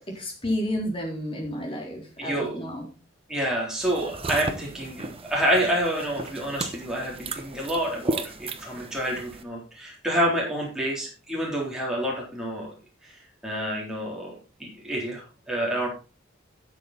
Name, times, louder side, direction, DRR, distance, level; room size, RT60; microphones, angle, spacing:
voice 1, 0.1-2.9, left 1 dB, 25° left, 0 dB, 4.0 m, -31 dB
voice 2, 2.2-2.6 3.3-12.7 13.0-14.3 14.6-15.9, right 1 dB, 5° right, -3 dB, 3.7 m, -28 dB
sound 1, 3.8-9.4, right 2 dB, 30° right, 1.0 m, -35 dB
12.0 x 7.3 x 4.3 m, 0.33 s
head